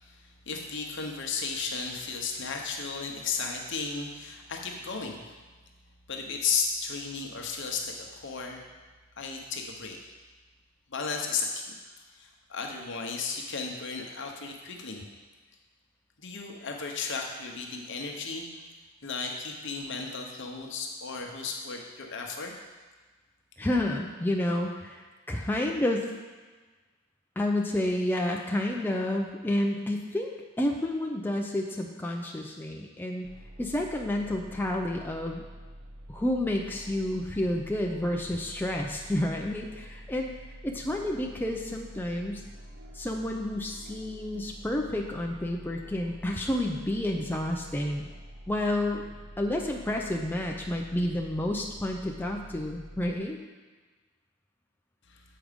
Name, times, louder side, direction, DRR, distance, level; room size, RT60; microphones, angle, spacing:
voice 1, 0.0-5.4 6.1-8.6 9.2-10.0 10.9-15.1 16.2-18.5 19.0-22.5 55.1-55.2, left 5 dB, 60° left, 2 dB, 1.0 m, -34 dB
voice 2, 23.6-26.1 27.4-30.3 30.6-33.3 33.6-35.4 36.1-40.3 40.6-42.4 42.9-48.1 48.5-49.0 49.4-53.4, left 1 dB, 10° left, 0 dB, 0.5 m, -30 dB
sound 1, 33.2-53.1, equal, 60° right, 0.9 m, -47 dB
7.8 x 4.8 x 5.1 m, 1.3 s
head